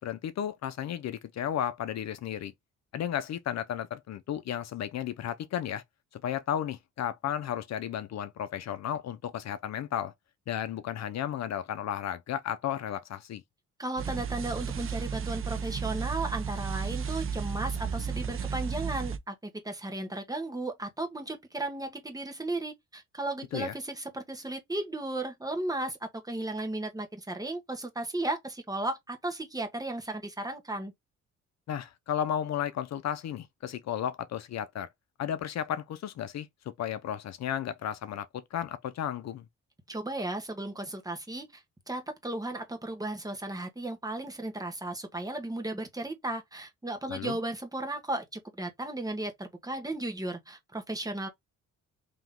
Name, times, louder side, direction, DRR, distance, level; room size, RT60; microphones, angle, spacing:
voice 1, 0.0-2.5 2.9-5.8 6.2-10.1 10.5-13.4 23.5-23.7 31.7-34.9 35.2-36.5 36.8-39.4 47.1-47.4, left 10 dB, 60° left, 0.6 m, -33 dB
voice 2, 13.8-30.9 39.9-51.3, right 2 dB, 10° right, 1.3 m, -35 dB
sound 1, 14.0-19.2, right 6 dB, 45° right, 0.8 m, -33 dB
3.7 x 2.9 x 3.7 m
cardioid pair, 90°, 30 cm